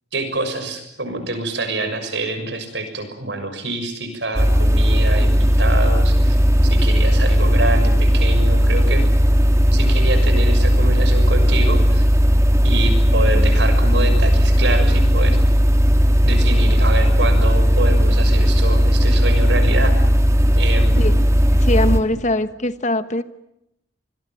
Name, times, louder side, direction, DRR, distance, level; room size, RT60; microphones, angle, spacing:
voice 1, 0.1-6.4 6.6-9.0 9.7-12.1 12.6-15.4 16.2-19.9 20.5-21.2, right 2 dB, 70° right, 8 dB, 6.5 m, -26 dB
sound 1, 4.3-22.0, equal, 15° right, 2.4 m, -15 dB
voice 2, 21.6-23.2, left 1 dB, 40° left, 12 dB, 1.2 m, -21 dB
26.0 x 21.5 x 9.2 m, 0.81 s
head